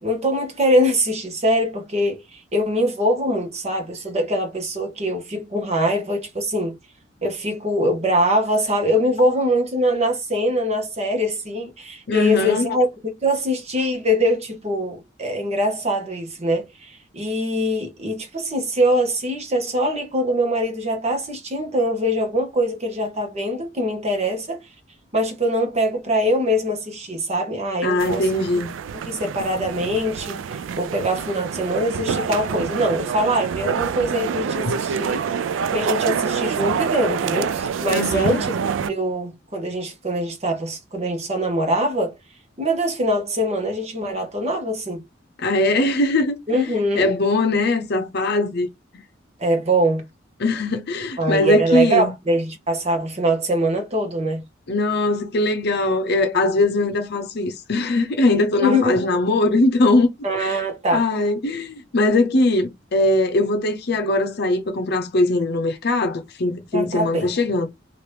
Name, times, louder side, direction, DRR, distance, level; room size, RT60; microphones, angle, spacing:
voice 1, 0.0-6.8 7.2-24.6 25.1-28.3 28.9-35.2 35.7-38.5 38.9-42.2 42.6-45.0 46.5-47.1 49.4-50.1 51.2-54.4 58.6-59.0 60.2-61.0 66.7-67.3, equal, 35° right, 1.0 m, -23 dB
voice 2, 12.1-12.8 27.8-28.7 37.9-38.4 45.4-46.4 46.9-48.7 50.4-52.1 54.7-60.1 60.4-60.6 60.9-67.7, left 2 dB, 60° left, 0.7 m, -20 dB
sound 1, 28.0-38.9, right 7 dB, 90° right, 0.3 m, -26 dB
2.9 x 2.5 x 3.3 m
head